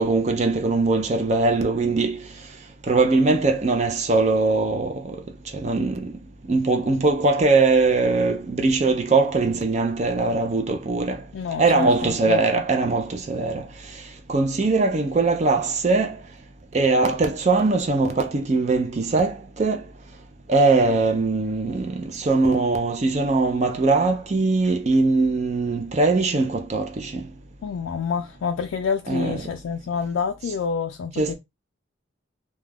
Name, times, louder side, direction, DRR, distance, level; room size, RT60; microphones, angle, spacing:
voice 1, 0.0-2.2 2.9-5.0 5.6-6.1 6.5-11.2 11.6-13.6 14.3-16.2 16.7-19.8 20.5-27.1 29.1-29.4 31.2-31.3, right 3 dB, 35° right, 0.4 m, -21 dB
voice 2, 11.3-12.4 27.6-31.3, left 6 dB, 85° left, 0.3 m, -27 dB
2.3 x 2.1 x 3.3 m
head